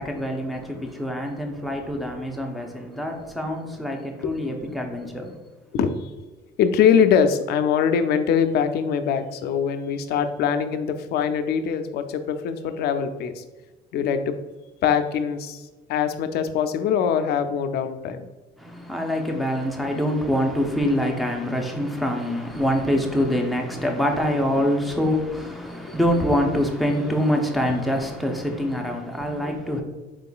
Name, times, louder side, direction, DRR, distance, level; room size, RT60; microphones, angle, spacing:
voice 1, 0.0-5.4 18.6-29.8, equal, ahead, 0.6 m, -25 dB
voice 2, 5.7-6.1 6.6-13.4 13.9-14.4 14.8-15.6 15.9-18.3 29.4-29.5, left 7 dB, 70° left, 0.4 m, -22 dB
4.6 x 3.7 x 2.3 m
cardioid pair, 110°, 17 cm